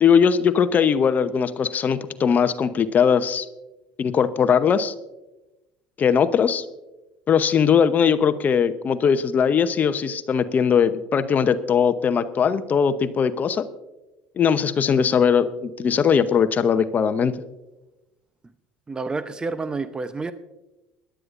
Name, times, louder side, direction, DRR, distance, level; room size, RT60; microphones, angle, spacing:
voice 1, 0.0-3.5 4.0-4.9 6.0-6.6 7.3-13.7 14.4-17.3, left 7 dB, 40° left, 11 dB, 0.8 m, -20 dB
voice 2, 18.9-20.3, right 3 dB, 20° right, 12 dB, 0.8 m, -29 dB
22.0 x 11.5 x 2.6 m, 1.0 s
hypercardioid pair, 70°, 4 cm